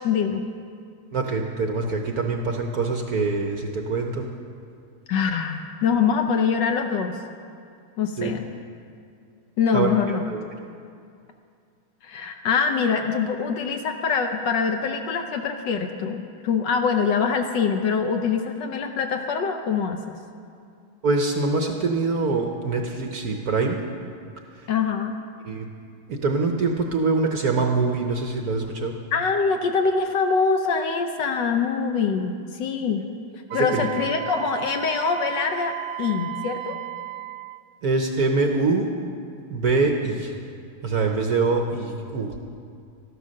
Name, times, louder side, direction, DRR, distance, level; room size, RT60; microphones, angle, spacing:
voice 1, 0.0-0.4 5.1-7.2 8.0-8.4 9.6-10.3 12.0-20.1 24.7-25.1 29.1-33.0 33.5-36.8, left 6 dB, 65° left, 5 dB, 1.3 m, -24 dB
voice 2, 1.1-4.3 8.2-8.3 9.7-10.4 21.0-23.8 24.5-24.7 25.4-25.7 26.1-29.0 33.5-33.9 37.8-38.9 39.5-40.4 40.8-42.3, right 3 dB, 55° right, 3 dB, 1.1 m, -24 dB
Wind instrument woodwind instrument, 33.5-37.6, right 14 dB, 80° right, 1.3 m, -34 dB
13.5 x 11.5 x 6.4 m, 2.4 s
omnidirectional pair, 2.4 m